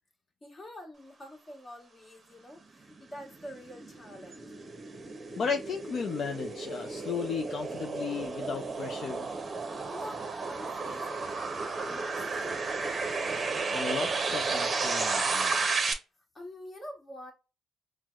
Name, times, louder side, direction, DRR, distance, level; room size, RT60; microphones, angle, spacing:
voice 1, 0.4-4.4 9.9-13.2 16.3-17.3, left 1 dB, 30° left, 1.3 m, -47 dB
sound 1, 2.7-15.9, right 4 dB, 35° right, 0.7 m, -33 dB
voice 2, 5.4-9.3 13.7-15.6, left 6 dB, 60° left, 0.4 m, -35 dB
4.4 x 2.1 x 2.3 m
cardioid pair, 90°, 0 cm